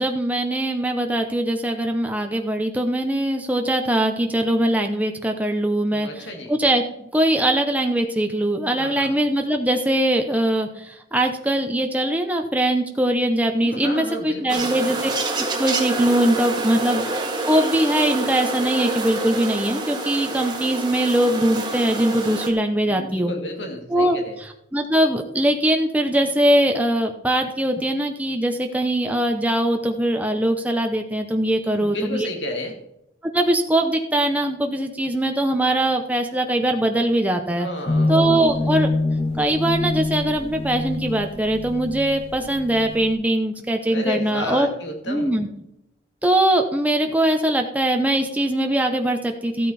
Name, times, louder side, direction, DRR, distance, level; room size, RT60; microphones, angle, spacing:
voice 1, 0.0-15.0 15.5-23.3 23.9-32.3 33.3-37.7 38.1-38.9 39.4-44.7 45.1-45.5 46.2-49.7, right 1 dB, 10° right, 4 dB, 0.8 m, -21 dB
voice 2, 5.9-6.6 8.8-9.1 13.6-15.0 16.7-17.1 22.9-24.4 31.7-32.8 37.6-38.5 43.9-45.3, left 1 dB, 85° left, 3 dB, 2.2 m, -32 dB
sound 1, 14.5-22.5, right 3 dB, 25° right, 1.6 m, -27 dB
sound 2, 37.9-43.1, left 2 dB, 35° left, 1.4 m, -25 dB
14.0 x 8.8 x 4.2 m, 0.82 s
head